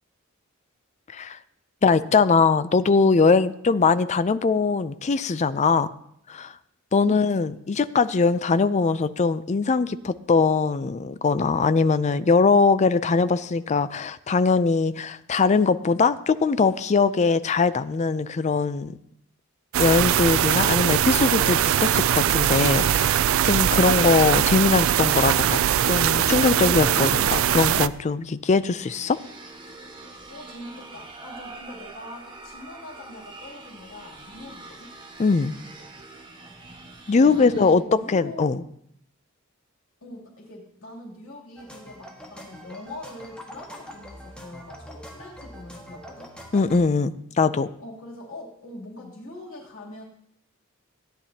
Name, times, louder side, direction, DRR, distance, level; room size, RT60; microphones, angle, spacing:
voice 1, 1.8-5.9 6.3-6.5 6.9-19.0 19.8-29.2 35.2-35.6 37.1-38.6 46.5-47.7, left 4 dB, 35° left, 13 dB, 0.4 m, -21 dB
voice 2, 7.0-7.5 30.3-34.9 37.1-38.5 40.0-46.3 47.8-50.0, left 1 dB, 80° left, -2 dB, 2.9 m, -42 dB
sound 1, 19.7-27.9, right 10 dB, 70° right, 0.3 m, -21 dB
sound 2, 28.8-37.7, right 3 dB, 20° right, 1.4 m, -44 dB
sound 3, 41.6-46.8, equal, 5° left, 1.5 m, -44 dB
16.5 x 10.0 x 2.8 m, 0.70 s
head